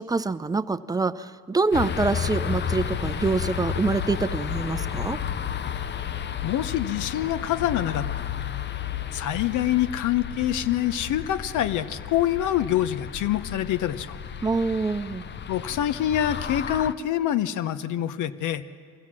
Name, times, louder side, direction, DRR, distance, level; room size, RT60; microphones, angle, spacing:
voice 1, 0.0-5.2 14.4-15.2, right 3 dB, 10° right, 12 dB, 0.5 m, -26 dB
sound 1, 1.7-16.9, left 8 dB, 35° left, 0.6 m, -32 dB
voice 2, 6.4-8.3 9.1-14.2 15.5-18.6, left 11 dB, 70° left, 12 dB, 0.9 m, -26 dB
23.5 x 16.0 x 7.5 m, 2.3 s
cardioid pair, 90°, 31 cm